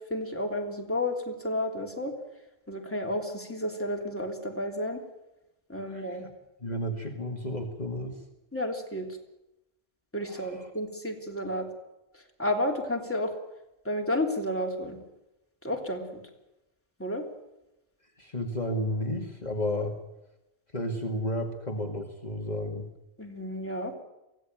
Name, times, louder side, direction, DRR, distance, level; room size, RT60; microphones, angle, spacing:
voice 1, 0.1-2.1 2.7-5.0 5.7-6.2 8.5-9.1 10.1-11.7 12.4-13.3 13.8-15.0 15.6-16.0 17.0-17.2 23.2-23.9, left 1 dB, 10° left, 2 dB, 3.2 m, -31 dB
voice 2, 5.8-6.3 6.6-8.2 10.2-10.7 18.2-19.9 20.7-22.9, left 1 dB, 40° left, 2 dB, 2.3 m, -32 dB
24.0 x 16.5 x 9.1 m, 0.94 s
omnidirectional pair, 1.1 m